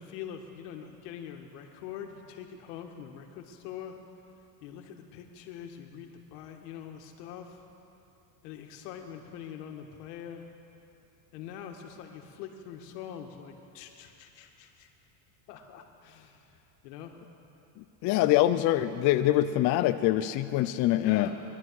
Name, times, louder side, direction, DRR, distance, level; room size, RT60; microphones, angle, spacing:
voice 1, 0.0-4.0 4.6-7.6 8.4-10.5 11.3-14.9 15.5-16.6 16.8-17.2 21.0-21.4, left 9 dB, 80° left, 4 dB, 1.7 m, -43 dB
voice 2, 17.8-21.3, left 14 dB, 40° left, 9 dB, 0.4 m, -24 dB
21.5 x 11.5 x 4.7 m, 3.0 s
supercardioid pair, 130°, 48 cm